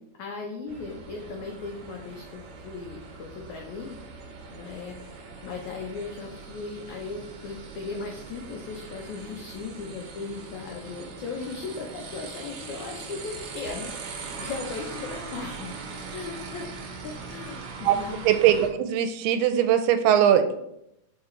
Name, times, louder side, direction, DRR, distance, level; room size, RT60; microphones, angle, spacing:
voice 1, 0.2-4.0 4.5-15.8 16.1-16.7 17.0-18.2, left 4 dB, 85° left, 0 dB, 1.7 m, -37 dB
sound 1, 0.7-18.7, right 4 dB, 70° right, 1.7 m, -41 dB
voice 2, 18.3-20.5, right 10 dB, 85° right, 8 dB, 2.6 m, -20 dB
7.3 x 4.8 x 3.2 m, 0.79 s
omnidirectional pair, 4.5 m